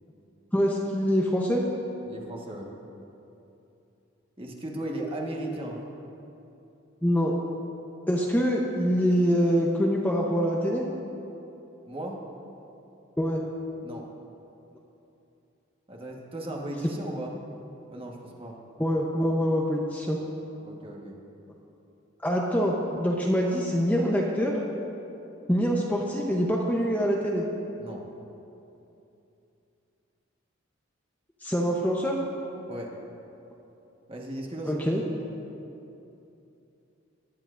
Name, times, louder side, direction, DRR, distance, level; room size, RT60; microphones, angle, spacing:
voice 1, 0.5-1.6 7.0-7.3 8.1-10.8 13.2-13.4 18.8-20.2 22.2-24.5 25.5-27.4 31.4-32.1 34.7-35.0, equal, 10° left, -2 dB, 0.7 m, -25 dB
voice 2, 2.0-2.7 4.4-5.8 11.8-12.2 13.8-14.0 15.9-17.3 17.9-18.6 20.6-21.2 27.8-28.1 32.7-32.9 34.1-34.9 35.2-35.3, right 1 dB, 25° right, -1 dB, 1.3 m, -36 dB
19.0 x 10.5 x 2.5 m, 2.8 s
head